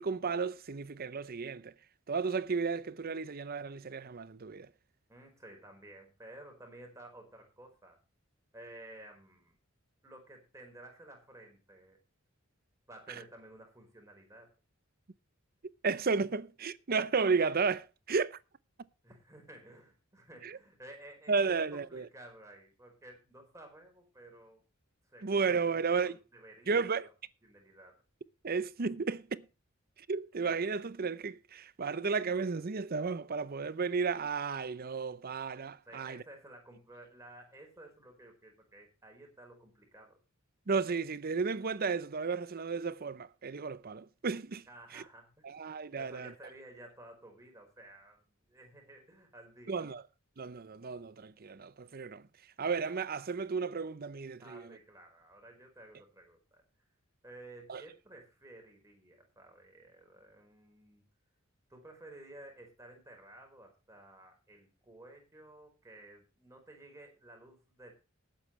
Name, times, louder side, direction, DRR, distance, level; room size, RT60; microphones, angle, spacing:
voice 1, 0.0-1.7 2.1-4.7 15.8-18.4 20.4-20.6 21.3-22.1 25.2-26.2 26.7-27.1 28.4-29.4 30.1-36.2 40.7-44.6 44.9-45.0 45.4-46.3 49.7-50.0 50.4-52.3 52.6-54.7 57.7-57.8, right 5 dB, 45° right, 0.7 m, -33 dB
voice 2, 5.1-8.0 8.5-9.6 10.0-12.0 12.9-14.5 19.0-24.6 25.1-27.1 27.4-28.0 35.8-40.2 44.7-45.5 46.0-49.8 54.4-56.6 57.2-61.0 61.7-67.9, right 1 dB, 15° right, 4.7 m, -54 dB
20.0 x 8.8 x 3.2 m
head